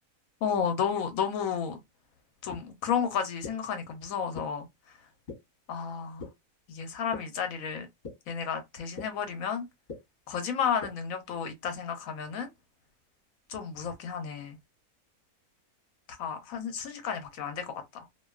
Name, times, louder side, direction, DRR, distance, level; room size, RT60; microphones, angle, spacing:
voice 1, 0.4-1.8 2.4-4.6 5.7-6.3 6.7-7.9 8.3-9.7 10.3-12.5 13.5-14.6 16.2-18.0, left 7 dB, 70° left, 0.9 m, -32 dB
sound 1, 2.5-2.6 3.4-3.5 4.3-4.4 5.3-5.4 6.2-6.3 7.1-7.2 8.0-8.1 9.0-9.1 9.9-10.0 10.8-10.9, left 4 dB, 35° left, 0.9 m, -38 dB
2.5 x 2.2 x 2.3 m
omnidirectional pair, 1.6 m